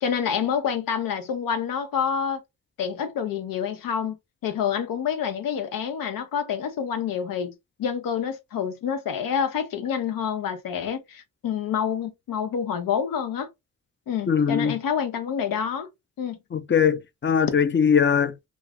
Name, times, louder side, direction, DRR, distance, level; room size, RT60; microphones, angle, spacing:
voice 1, 0.0-2.4 2.8-4.2 4.4-7.5 7.8-13.5 14.1-15.9 16.2-16.4, left 7 dB, 85° left, 0.6 m, -27 dB
voice 2, 14.3-14.8 16.5-18.5, left 7 dB, 35° left, 0.5 m, -21 dB
2.4 x 2.4 x 3.3 m
cardioid pair, 80°, 33 cm